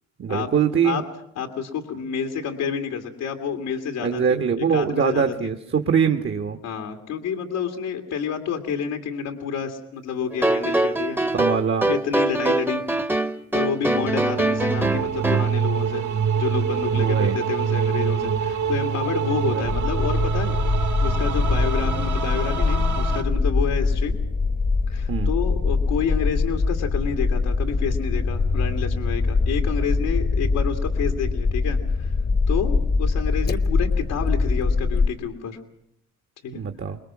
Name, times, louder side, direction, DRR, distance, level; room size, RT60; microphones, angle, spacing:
voice 1, 0.2-1.0 4.0-6.6 11.3-11.9 16.9-17.4 19.5-19.7 25.1-25.3 36.5-37.0, right 7 dB, 40° right, 6 dB, 1.4 m, -23 dB
voice 2, 1.4-5.5 6.6-11.2 11.9-12.8 13.5-16.1 16.3-24.1 24.9-32.2 32.5-35.6 36.4-36.6, left 6 dB, 90° left, 5 dB, 2.2 m, -29 dB
sound 1, 10.3-15.5, right 2 dB, 5° right, 1.1 m, -23 dB
sound 2, 13.8-23.2, right 6 dB, 70° right, 2.7 m, -25 dB
sound 3, 19.6-35.1, left 4 dB, 30° left, 1.1 m, -23 dB
25.0 x 21.0 x 6.1 m, 0.77 s
cardioid pair, 90°, 30 cm